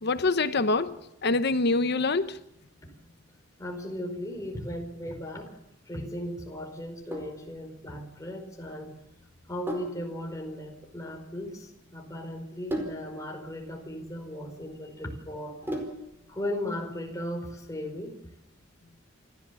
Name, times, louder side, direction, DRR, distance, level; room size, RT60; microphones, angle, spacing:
voice 1, 0.0-2.4, left 3 dB, 55° left, 0.9 m, -25 dB
voice 2, 3.6-5.5 5.9-8.9 9.5-15.6 16.3-18.1, left 1 dB, 15° left, 4.8 m, -37 dB
Sink (filling or washing), 7.1-16.3, right 1 dB, 10° right, 4.6 m, -40 dB
28.5 x 13.0 x 7.0 m
head